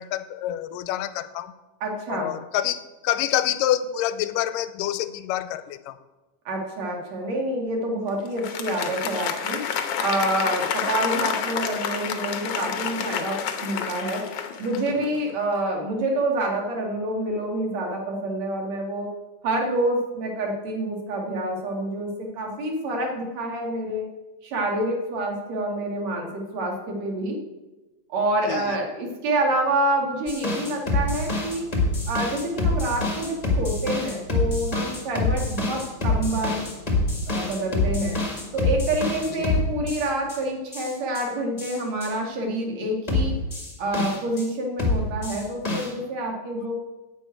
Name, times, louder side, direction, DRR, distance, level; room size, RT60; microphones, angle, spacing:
voice 1, 0.0-1.5 2.1-6.0 28.5-28.8 39.4-39.5, left 12 dB, 90° left, 12 dB, 2.3 m, -27 dB
voice 2, 1.8-2.3 6.4-9.6 10.0-14.2 14.6-19.1 19.4-24.0 24.4-27.4 28.1-31.7 32.1-36.6 37.3-38.1 38.5-43.3 43.8-46.7, right 1 dB, 55° right, 1 dB, 3.1 m, -27 dB
Applause, 8.3-15.2, left 7 dB, 65° left, 1.6 m, -29 dB
sound 1, 30.3-40.4 40.7-41.2 41.6-42.1 43.1-44.4 44.8-45.9, left 2 dB, 15° left, 1.4 m, -26 dB
9.9 x 7.1 x 9.1 m, 1.1 s
omnidirectional pair, 3.8 m